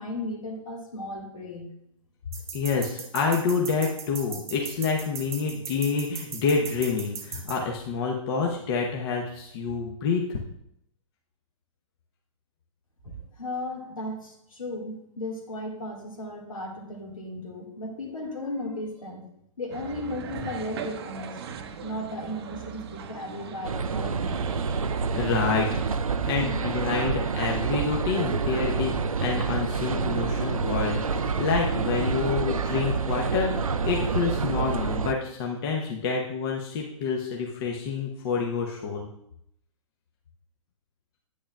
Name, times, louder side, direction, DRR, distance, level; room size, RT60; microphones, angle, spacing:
voice 1, 0.0-1.7 13.0-19.2 19.6-24.4, left 1 dB, 80° left, 0 dB, 1.9 m, -35 dB
sound 1, 2.3-7.6, right 6 dB, 15° right, 0.9 m, -37 dB
voice 2, 2.5-10.4 25.1-25.7 26.2-39.1, left 5 dB, 45° left, 0 dB, 1.0 m, -28 dB
sound 2, 19.7-26.0, right 7 dB, 50° right, 0.7 m, -39 dB
sound 3, 23.6-35.1, right 5 dB, 90° right, 0.4 m, -27 dB
8.8 x 8.4 x 2.3 m, 0.75 s
figure-of-eight pair, 120°, 17 cm